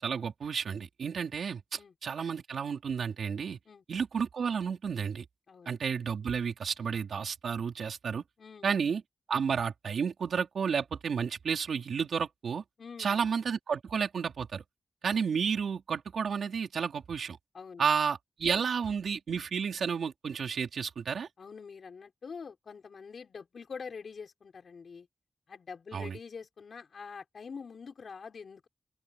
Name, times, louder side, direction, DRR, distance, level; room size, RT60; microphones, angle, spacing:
voice 1, 0.0-3.6 3.9-5.3 5.7-8.2 8.6-9.0 9.3-12.6 13.0-14.6 15.0-17.4 17.8-21.3 25.9-26.2, right 6 dB, 90° right, 4.2 m, -31 dB
voice 2, 5.5-5.8 8.4-8.8 12.8-13.2 17.5-17.9 21.4-25.1 25.5-28.7, left 5 dB, 70° left, 6.0 m, -45 dB
open air
wide cardioid pair, 95°, 0 cm